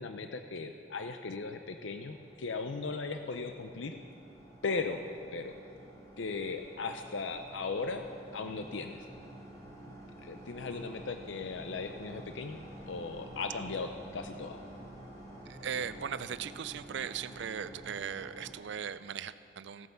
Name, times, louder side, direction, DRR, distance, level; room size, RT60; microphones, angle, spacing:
voice 1, 0.0-4.0 4.6-5.0 5.3-5.5 6.2-8.0 8.3-9.0 10.2-14.6, left 4 dB, 75° left, 7 dB, 0.6 m, -37 dB
sound 1, 1.1-18.5, right 1 dB, 20° left, 2.5 m, -50 dB
voice 2, 15.5-19.9, right 7 dB, 65° right, 14 dB, 0.4 m, -38 dB
16.0 x 9.4 x 6.8 m, 2.8 s
head